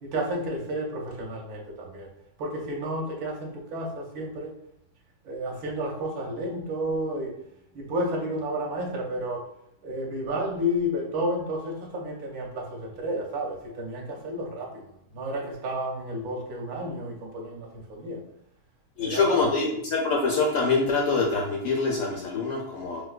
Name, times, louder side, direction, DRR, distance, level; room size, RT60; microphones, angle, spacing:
voice 1, 0.0-2.1 2.4-4.6 5.2-7.3 7.7-9.5 9.8-14.8 15.1-18.2 19.0-19.5, equal, 70° right, -1 dB, 1.1 m, -31 dB
voice 2, 19.0-23.0, left 4 dB, 70° left, -1 dB, 0.8 m, -25 dB
4.3 x 2.1 x 2.3 m, 0.75 s
omnidirectional pair, 1.7 m